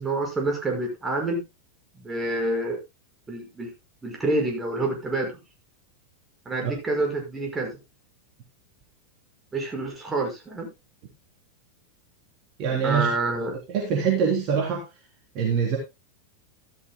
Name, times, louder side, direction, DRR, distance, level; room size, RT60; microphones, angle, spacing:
voice 1, 0.0-1.4 1.9-2.8 3.3-3.7 4.0-5.3 6.5-7.7 9.5-10.7 12.7-13.6, right 2 dB, 15° right, 1 dB, 5.6 m, -27 dB
voice 2, 12.6-13.1 13.7-14.8 15.3-15.8, right 6 dB, 40° right, 0 dB, 3.4 m, -24 dB
14.0 x 12.5 x 2.2 m, 0.23 s
figure-of-eight pair, 90°, 0 cm